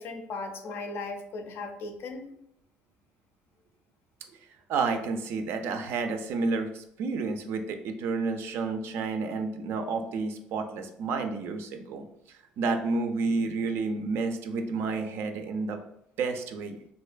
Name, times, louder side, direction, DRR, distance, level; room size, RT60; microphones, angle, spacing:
voice 1, 0.0-2.3, left 3 dB, 60° left, 5 dB, 0.4 m, -37 dB
voice 2, 4.7-12.1 12.6-15.8 16.2-16.8, right 4 dB, 65° right, 6 dB, 0.3 m, -30 dB
2.5 x 2.2 x 2.4 m, 0.75 s
supercardioid pair, 75°, 4 cm